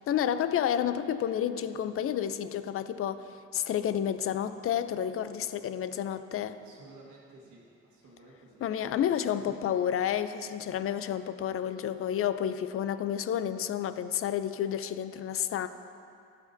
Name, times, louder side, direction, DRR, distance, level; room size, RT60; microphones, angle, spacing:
voice 1, 0.0-6.6 8.6-15.7, left 9 dB, 50° left, 12 dB, 0.4 m, -30 dB
voice 2, 6.6-8.6 9.0-9.7, right 2 dB, 80° right, -4 dB, 1.5 m, -54 dB
14.5 x 5.1 x 2.6 m, 2.5 s
cardioid pair, 90°, 30 cm